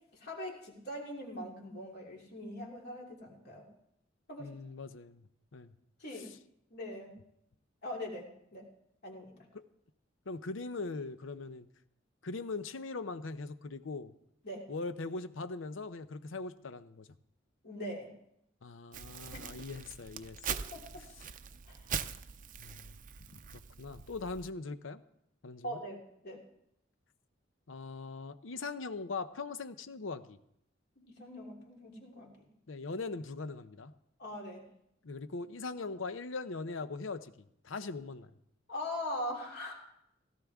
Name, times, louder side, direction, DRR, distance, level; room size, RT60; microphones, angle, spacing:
voice 1, 0.1-3.6 4.3-4.5 6.0-6.3 6.7-7.2 7.8-8.7 9.0-9.3 14.4-14.6 17.6-18.1 19.3-19.4 20.5-20.8 21.7-21.8 25.6-26.4 31.0-32.5 34.2-34.6 38.7-39.7, left 1 dB, 55° left, -1 dB, 3.1 m, -41 dB
voice 2, 4.4-5.2 5.5-5.7 6.1-6.4 9.5-9.6 10.3-11.7 12.2-14.1 14.7-17.1 18.6-20.6 22.6-23.0 23.8-25.0 25.4-25.8 27.7-30.4 32.7-33.9 35.0-37.3 37.6-38.3, left 3 dB, 85° left, 12 dB, 0.7 m, -40 dB
Crumpling crinkling, 18.9-24.5, right 7 dB, 45° right, 0.5 m, -42 dB
16.5 x 14.0 x 3.6 m, 0.75 s
head